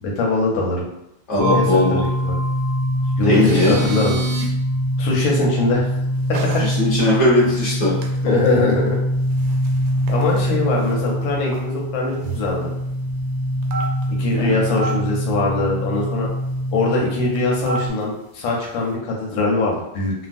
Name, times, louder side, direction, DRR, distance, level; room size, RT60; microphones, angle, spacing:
voice 1, 0.0-0.9 1.3-2.4 3.2-4.2 5.0-5.9 6.3-6.6 8.2-9.0 10.1-12.7 14.2-16.3 16.7-20.1, left 2 dB, 90° left, -2 dB, 1.5 m, -22 dB
voice 2, 1.3-2.0 3.2-3.8 6.6-7.9 14.3-14.6, left 2 dB, 20° left, -9 dB, 1.1 m, -18 dB
sound 1, 1.4-17.9, equal, 60° right, 0.8 m, -23 dB
sound 2, 3.2-4.5 6.3-6.6 7.0-7.1 7.4-7.6 8.0-8.1 8.5-8.6 9.3-10.5 10.9-11.0 11.2-11.3 11.5-11.6 12.2-12.6 13.6-14.2 14.8-14.9 17.4-18.0, right 3 dB, 80° right, 1.2 m, -29 dB
3.4 x 2.2 x 2.5 m, 0.82 s
omnidirectional pair, 2.0 m